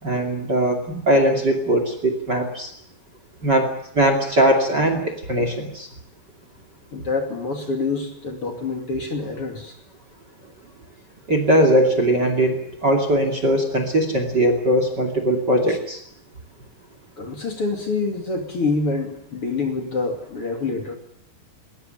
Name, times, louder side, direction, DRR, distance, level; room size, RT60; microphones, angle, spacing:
voice 1, 0.0-2.7 3.4-5.9 11.3-16.0, right 1 dB, 30° right, 7 dB, 2.8 m, -20 dB
voice 2, 6.9-9.8 15.7-15.8 17.2-21.0, left 3 dB, 40° left, 4 dB, 3.1 m, -26 dB
21.0 x 19.5 x 9.1 m, 0.67 s
omnidirectional pair, 4.3 m